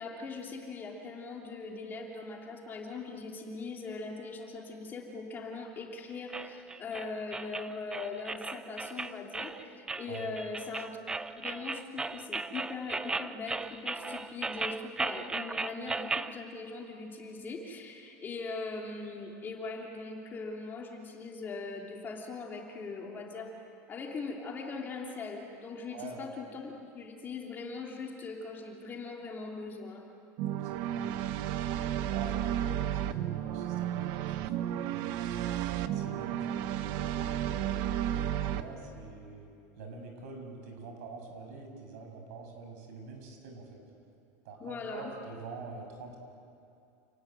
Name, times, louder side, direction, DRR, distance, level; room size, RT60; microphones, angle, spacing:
voice 1, 0.0-11.0 11.3-23.5 23.9-30.1 44.6-45.1, left 4 dB, 25° left, 0 dB, 3.1 m, -40 dB
sound 1, 6.3-16.3, right 3 dB, 10° right, 0.6 m, -36 dB
voice 2, 25.9-26.3 30.5-31.5 32.0-35.1 35.8-39.5 39.8-43.8 44.4-46.2, right 3 dB, 70° right, 3 dB, 6.7 m, -45 dB
sound 2, 30.4-38.6, right 11 dB, 50° right, 1.2 m, -32 dB
29.0 x 19.0 x 9.2 m, 2.6 s
supercardioid pair, 155°, 9 cm